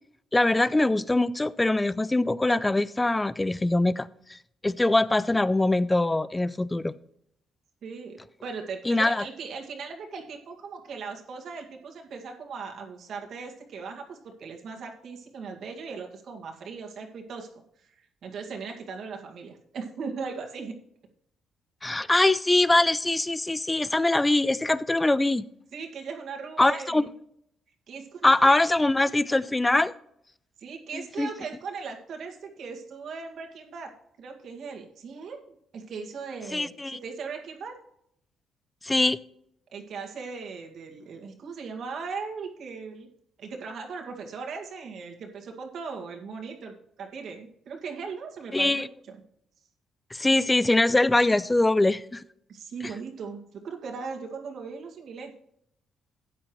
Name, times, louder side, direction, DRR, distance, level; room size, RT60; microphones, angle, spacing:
voice 1, 0.3-4.4 4.6-6.9 8.9-9.2 21.8-25.4 26.6-27.0 28.2-29.9 30.9-31.3 36.5-37.0 38.8-39.2 48.5-48.9 50.1-52.2, left 2 dB, 15° left, 18 dB, 0.5 m, -23 dB
voice 2, 7.8-20.8 25.7-27.1 27.9-28.6 30.6-35.4 35.7-37.8 39.7-43.1 43.4-49.2 52.5-55.3, right 5 dB, 65° right, 2 dB, 2.1 m, -38 dB
13.0 x 9.0 x 3.1 m, 0.73 s
cardioid pair, 90°, 0 cm